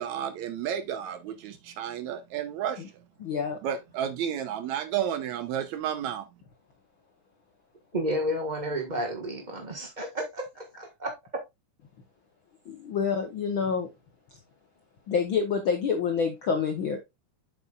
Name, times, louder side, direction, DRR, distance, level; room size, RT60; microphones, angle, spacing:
voice 1, 0.0-3.0 3.6-6.3, right 9 dB, 75° right, 2.0 m, -32 dB
voice 2, 3.2-3.6 12.7-13.9 15.1-17.0, left 6 dB, 65° left, 1.2 m, -27 dB
voice 3, 7.9-11.1, equal, 55° right, 0.5 m, -31 dB
7.9 x 7.1 x 2.4 m
omnidirectional pair, 3.7 m